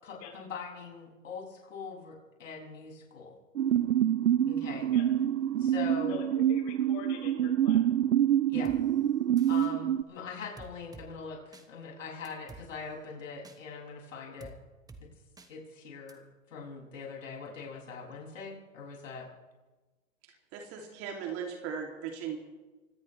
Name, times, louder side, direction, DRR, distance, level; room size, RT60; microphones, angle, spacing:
voice 1, 0.0-3.4 4.5-4.9 5.6-6.1 8.5-8.7 9.4-14.5 15.5-16.2 16.5-19.3, left 5 dB, 75° left, -1 dB, 6.7 m, -42 dB
sound 1, 3.6-10.0, right 10 dB, 80° right, 0.7 m, -26 dB
voice 2, 6.1-7.8, left 8 dB, 40° left, 0 dB, 7.5 m, -44 dB
sound 2, 8.6-8.8 9.4-9.7 10.6-11.1 11.5-11.7 12.2-12.6 13.4-13.6 14.4-14.5 14.9-15.0 15.4-15.5 16.1-16.2, right 3 dB, 10° right, 1.4 m, -49 dB
voice 3, 20.2-22.4, right 7 dB, 35° right, 2 dB, 2.8 m, -38 dB
24.5 x 18.0 x 3.3 m, 1.2 s
hypercardioid pair, 110°, 40 cm